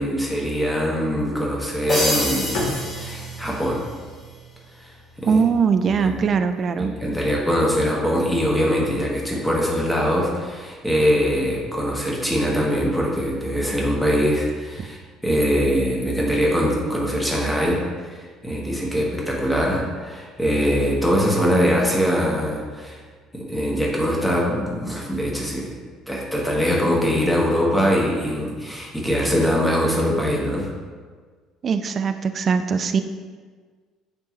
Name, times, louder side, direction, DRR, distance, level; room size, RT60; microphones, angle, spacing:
voice 1, 0.0-2.7 2.9-3.8 4.8-4.9 5.2-5.4 6.0-6.1 6.8-15.0 15.2-18.2 18.4-23.0 23.3-25.7 26.1-30.7, equal, 5° left, -3 dB, 1.6 m, -22 dB
sound 1, 1.9-4.0, left 1 dB, 35° left, 1.6 m, -26 dB
Bowed string instrument, 2.5-6.5, left 1 dB, 60° left, 0.8 m, -35 dB
voice 2, 5.2-6.9 31.6-33.0, right 6 dB, 40° right, 9 dB, 0.3 m, -21 dB
9.0 x 3.6 x 3.0 m, 1.5 s
figure-of-eight pair, 55°, 0 cm